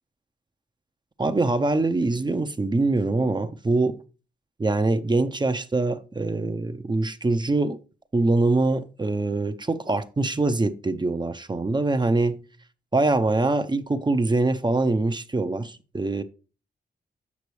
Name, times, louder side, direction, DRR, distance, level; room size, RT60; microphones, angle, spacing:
voice 1, 1.2-4.0 4.6-7.8 8.1-12.4 12.9-16.2, right 2 dB, 25° right, 0.7 m, -24 dB
8.2 x 5.9 x 3.2 m
cardioid pair, 60°, 19 cm